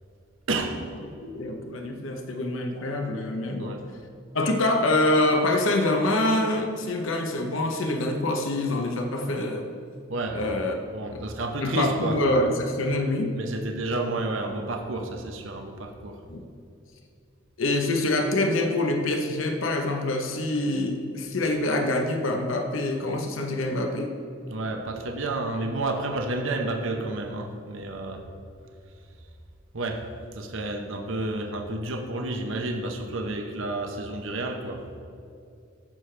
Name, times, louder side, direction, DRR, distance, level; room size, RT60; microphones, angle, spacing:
voice 1, 0.5-0.8 3.6-3.8 10.1-10.4 10.9-12.2 13.4-16.2 24.5-28.2 29.7-30.1 30.3-34.8, right 2 dB, 70° right, 3 dB, 0.9 m, -30 dB
voice 2, 1.2-3.8 4.3-9.7 10.3-10.7 11.6-13.3 16.3-16.4 17.6-24.1, left 2 dB, 75° left, 4 dB, 0.9 m, -25 dB
14.5 x 6.6 x 3.3 m, 2.5 s
head